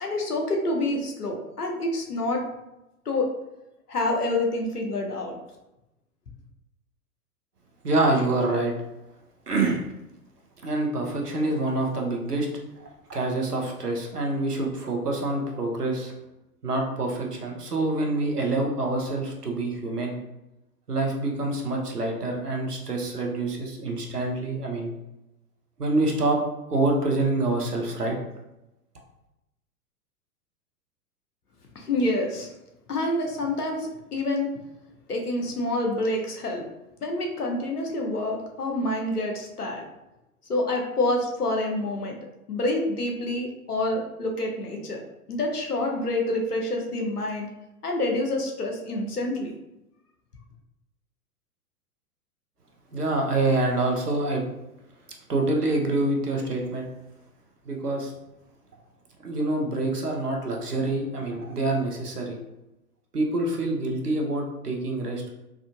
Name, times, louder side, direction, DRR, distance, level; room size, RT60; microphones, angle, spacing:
voice 1, 0.0-2.5 3.1-3.3 3.9-5.4 31.7-32.5 32.9-34.5 35.1-36.6 37.0-39.8 40.5-42.1 42.5-45.0 45.3-47.5 47.8-49.5, left 2 dB, 80° left, 1 dB, 0.8 m, -27 dB
voice 2, 7.8-8.7 9.5-9.8 10.6-12.5 12.8-16.1 16.6-20.2 20.9-24.9 25.8-26.4 26.7-28.2 52.9-54.4 55.3-56.9 57.7-58.1 59.2-62.4 63.1-65.3, right 2 dB, 85° right, 0 dB, 0.8 m, -26 dB
3.6 x 2.5 x 2.3 m, 0.93 s
figure-of-eight pair, 100°, 45 cm